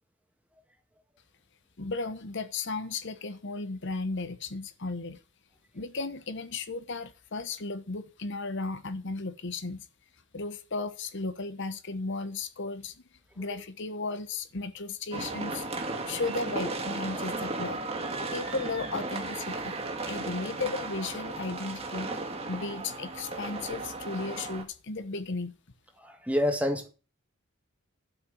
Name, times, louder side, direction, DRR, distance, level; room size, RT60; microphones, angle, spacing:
voice 1, 1.8-5.2 5.7-9.9 10.3-13.0 13.4-15.7 16.1-17.8 18.3-19.8 20.0-22.2 22.5-25.6, left 3 dB, 60° left, 1.1 m, -35 dB
sound 1, 15.1-24.6, right 3 dB, 30° right, 2.0 m, -35 dB
voice 2, 26.0-26.9, equal, 5° right, 1.7 m, -28 dB
12.0 x 5.8 x 7.8 m
head